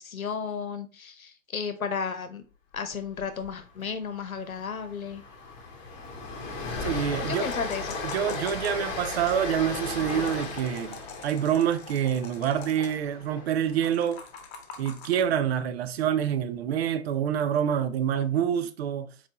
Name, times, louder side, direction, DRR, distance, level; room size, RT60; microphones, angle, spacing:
voice 1, 0.0-2.4 2.7-5.2 7.2-8.0, left 6 dB, 80° left, 0.9 m, -33 dB
Train, 3.2-3.5 3.7-3.9 4.3-14.4, left 3 dB, 25° left, 1.4 m, -36 dB
voice 2, 6.8-7.5 8.0-14.2 14.8-19.1, right 9 dB, 50° right, 0.6 m, -27 dB
sound 1, 7.3-9.4 9.8-13.0 13.8-15.2, left 5 dB, 50° left, 1.0 m, -45 dB
4.3 x 4.2 x 2.9 m
figure-of-eight pair, 110°, 41 cm